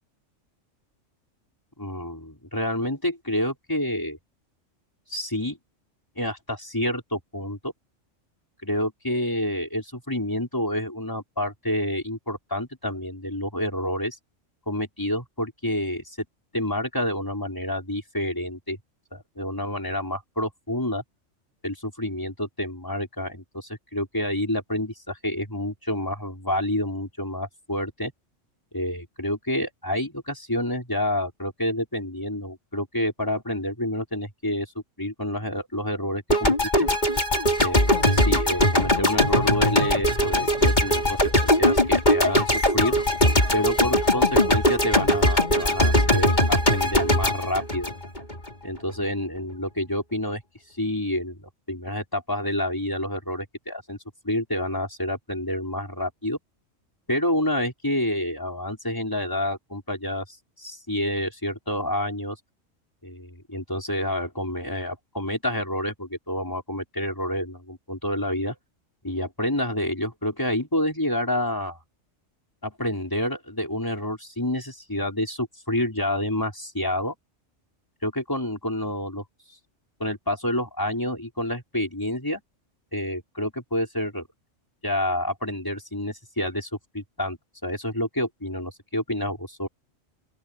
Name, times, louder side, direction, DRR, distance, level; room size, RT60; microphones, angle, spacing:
voice 1, 1.8-4.2 5.1-5.6 6.2-7.7 8.6-14.2 14.7-16.2 16.5-18.8 19.1-21.0 21.6-28.1 28.7-34.7 35.0-36.9 37.6-43.0 43.5-48.1 48.6-50.4 50.8-54.0 54.2-56.4 57.1-62.4 63.0-68.6 69.0-71.8 72.6-77.1 78.0-79.2 80.0-82.4 82.9-84.2 84.8-86.7 86.9-87.4 87.6-89.7, left 1 dB, 15° left, 5.8 m, -28 dB
sound 1, 36.3-48.5, left 1 dB, 35° left, 4.2 m, -20 dB
open air
omnidirectional pair, 1.3 m